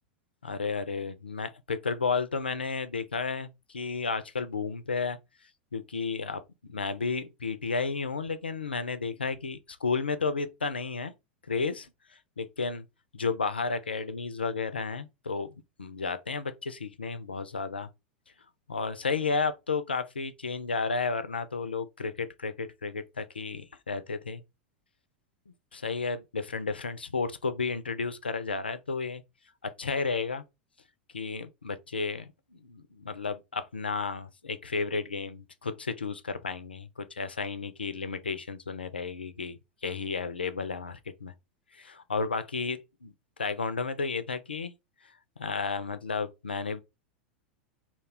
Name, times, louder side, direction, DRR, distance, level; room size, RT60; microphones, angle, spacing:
voice 1, 0.4-5.2 5.7-6.4 6.7-11.1 11.5-12.9 13.1-17.9 18.7-24.4 25.5-29.2 29.6-30.4 31.1-41.3 41.7-42.8 43.4-44.7 45.4-46.8, left 4 dB, 80° left, 0.3 m, -32 dB
2.3 x 2.1 x 3.3 m
figure-of-eight pair, 90°, 5 cm